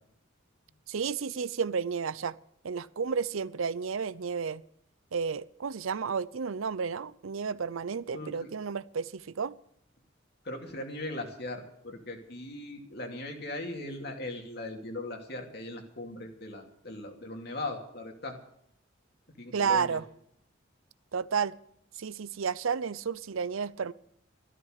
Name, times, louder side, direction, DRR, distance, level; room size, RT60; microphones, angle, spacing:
voice 1, 0.9-2.4 2.6-4.6 5.1-9.5 19.5-20.0 21.1-21.5 22.0-23.9, right 6 dB, 85° right, 19 dB, 0.6 m, -31 dB
voice 2, 8.1-8.5 10.4-18.4 19.4-20.0, left 2 dB, 50° left, 3 dB, 2.6 m, -39 dB
14.0 x 12.5 x 6.5 m, 0.71 s
head